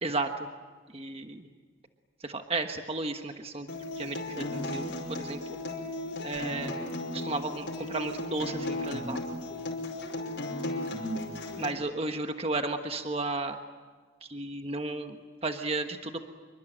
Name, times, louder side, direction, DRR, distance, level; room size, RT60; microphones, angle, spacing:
voice 1, 0.0-0.5 0.9-1.5 2.2-3.7 4.0-5.4 6.2-6.7 7.1-9.2 11.6-13.6 14.2-16.3, right 2 dB, 30° right, 6 dB, 1.3 m, -33 dB
Acoustic guitar, 3.7-11.7, left 1 dB, 60° left, 5.3 m, -35 dB
27.5 x 24.0 x 9.0 m, 1.5 s
head